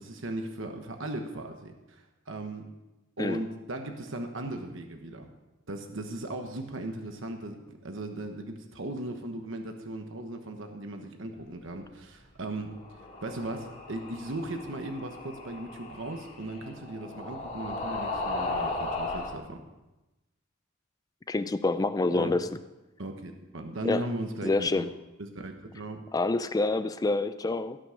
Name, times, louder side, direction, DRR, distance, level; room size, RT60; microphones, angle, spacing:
voice 1, 0.0-2.7 3.2-5.3 5.7-12.8 13.2-19.6 22.1-22.4 23.0-24.9 25.2-26.0, right 1 dB, 65° right, 5 dB, 1.1 m, -37 dB
sound 1, 12.6-19.4, left 2 dB, 35° left, 2.5 m, -36 dB
voice 2, 21.3-22.5 23.8-24.1 24.4-24.9 26.1-27.8, left 2 dB, 20° left, 12 dB, 0.3 m, -27 dB
17.0 x 6.1 x 6.4 m, 1.0 s
head